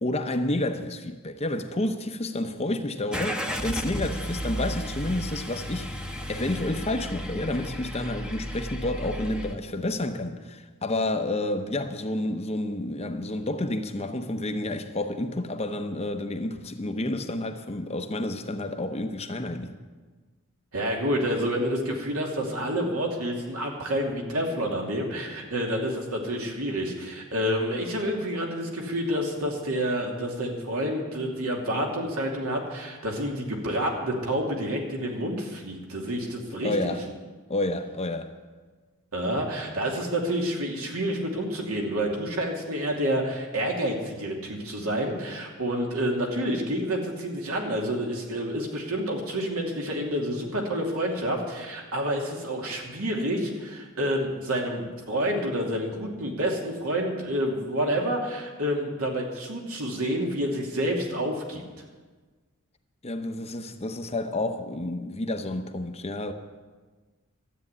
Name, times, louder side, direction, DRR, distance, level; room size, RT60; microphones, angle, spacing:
voice 1, 0.0-19.8 36.6-37.0 37.5-38.3 63.0-66.3, left 1 dB, 30° left, 0.8 m, -30 dB
Car / Engine starting, 3.1-9.5, equal, 5° right, 0.9 m, -33 dB
voice 2, 20.7-36.9 39.1-61.6, equal, 75° right, 2.7 m, -28 dB
13.0 x 8.6 x 9.8 m
head